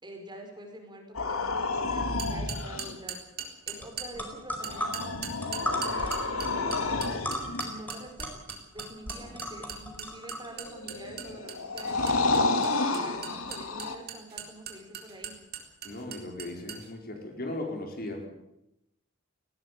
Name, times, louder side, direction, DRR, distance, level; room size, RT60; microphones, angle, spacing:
voice 1, 0.0-3.2 3.7-5.1 5.4-7.2 7.6-8.4 8.7-12.2 12.5-15.3, right 1 dB, 20° right, 3 dB, 5.1 m, -46 dB
sound 1, 1.1-2.9 4.5-7.7 10.6-13.9, left 3 dB, 90° left, 2.5 m, -30 dB
sound 2, 2.2-4.1 4.6-16.9, right 7 dB, 50° right, 3.9 m, -39 dB
sound 3, 3.8-3.9 4.1-10.7, equal, 10° left, 4.7 m, -36 dB
voice 2, 15.8-18.3, left 1 dB, 50° left, 3 dB, 4.9 m, -37 dB
19.5 x 18.0 x 8.4 m, 0.84 s
head